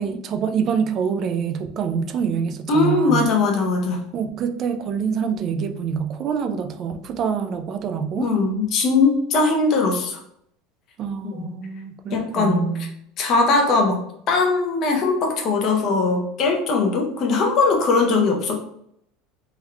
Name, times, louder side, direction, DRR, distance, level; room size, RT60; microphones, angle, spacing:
voice 1, 0.0-3.2 4.1-8.3 11.0-12.9, right 6 dB, 35° right, 8 dB, 0.3 m, -26 dB
voice 2, 2.7-4.0 8.2-10.2 11.3-11.4 12.1-12.7 13.2-14.0 14.3-18.6, left 3 dB, 35° left, 2 dB, 0.7 m, -20 dB
3.5 x 2.3 x 3.2 m, 0.70 s
cardioid pair, 165°, 0 cm